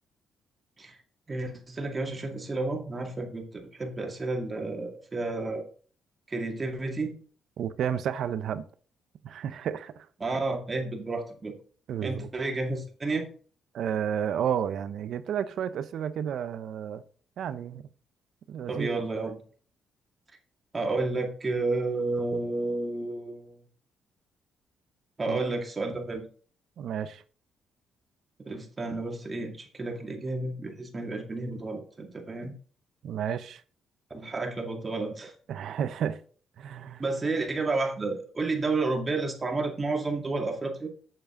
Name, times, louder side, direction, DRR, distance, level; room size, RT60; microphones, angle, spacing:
voice 1, 1.3-3.5 3.7-5.6 6.3-7.2 10.2-11.5 12.0-13.3 18.7-19.4 20.7-23.6 25.2-26.2 28.4-32.6 34.1-35.3 37.0-40.9, right 3 dB, 30° right, 2.1 m, -31 dB
voice 2, 7.6-8.6 9.2-10.1 11.9-12.3 13.7-17.0 17.4-17.9 18.5-19.3 25.3-25.6 26.8-27.2 33.0-33.6 35.5-36.2 36.6-37.0, right 9 dB, 70° right, 0.7 m, -31 dB
7.8 x 7.1 x 3.8 m
cardioid pair, 90°, 0 cm